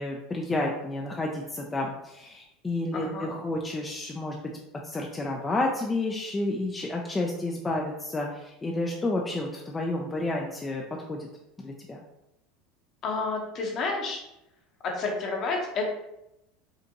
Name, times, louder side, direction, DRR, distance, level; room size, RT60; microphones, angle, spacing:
voice 1, 0.0-4.4 4.8-10.8 11.1-11.3 11.6-12.0, left 2 dB, 20° left, 0 dB, 0.5 m, -30 dB
voice 2, 2.9-3.3 13.0-14.2 14.8-15.8, left 3 dB, 45° left, 1 dB, 1.1 m, -30 dB
5.1 x 2.5 x 2.9 m, 0.86 s
supercardioid pair, 100°, 0 cm